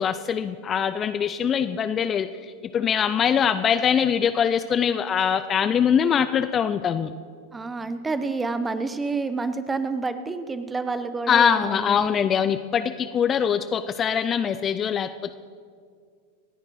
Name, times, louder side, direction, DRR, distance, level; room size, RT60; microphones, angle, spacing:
voice 1, 0.0-7.1 11.3-15.3, left 7 dB, 25° left, 11 dB, 0.4 m, -23 dB
voice 2, 7.5-12.3, right 3 dB, 10° right, 12 dB, 0.7 m, -29 dB
27.5 x 10.0 x 3.1 m, 2.2 s
figure-of-eight pair, 90°, 0 cm